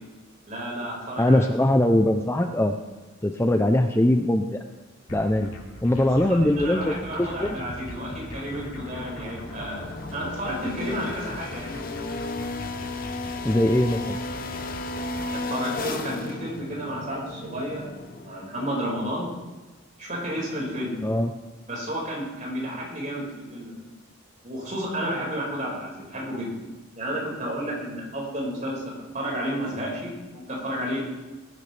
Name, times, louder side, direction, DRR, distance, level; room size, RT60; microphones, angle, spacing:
voice 1, 0.5-1.5 6.0-11.8 15.3-19.3 20.0-21.0 21.7-23.8 24.4-26.5 27.0-31.0, equal, 35° right, -3 dB, 4.9 m, -32 dB
voice 2, 1.2-2.7 3.2-4.6 5.1-5.5 5.8-7.6 13.4-14.2 21.0-21.3, left 1 dB, 10° left, 5 dB, 0.5 m, -21 dB
sound 1, 5.1-15.4, left 1 dB, 90° left, 3.7 m, -41 dB
sound 2, 6.7-18.5, left 2 dB, 45° left, 0.9 m, -35 dB
20.0 x 11.0 x 3.3 m, 1.2 s
head